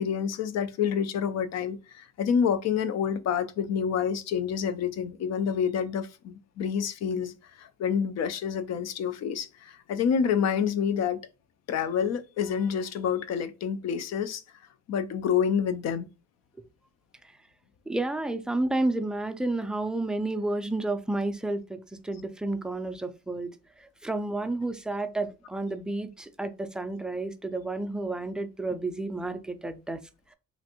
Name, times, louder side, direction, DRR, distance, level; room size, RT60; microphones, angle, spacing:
voice 1, 0.0-11.2 11.7-14.4 14.9-16.1, left 7 dB, 60° left, 0.5 m, -28 dB
voice 2, 17.9-21.8 22.0-23.5 23.8-30.0, right 2 dB, 5° right, 0.3 m, -31 dB
3.0 x 2.6 x 2.9 m
cardioid pair, 90°, 30 cm